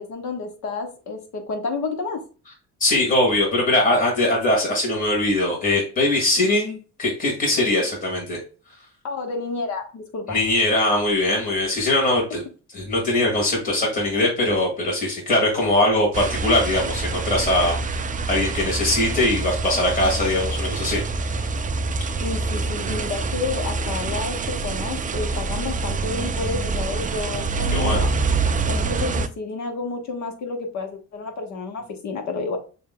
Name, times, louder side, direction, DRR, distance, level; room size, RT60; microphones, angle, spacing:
voice 1, 0.0-2.2 9.0-10.4 22.2-28.1 28.7-32.6, left 4 dB, 65° left, 4 dB, 1.3 m, -30 dB
voice 2, 2.8-8.4 10.3-12.4 12.7-21.5 27.7-28.1, left 1 dB, 30° left, -2 dB, 1.9 m, -21 dB
sound 1, 16.1-29.3, right 3 dB, 25° right, 0.4 m, -26 dB
6.6 x 2.7 x 2.2 m, 0.35 s
cardioid pair, 90°, 30 cm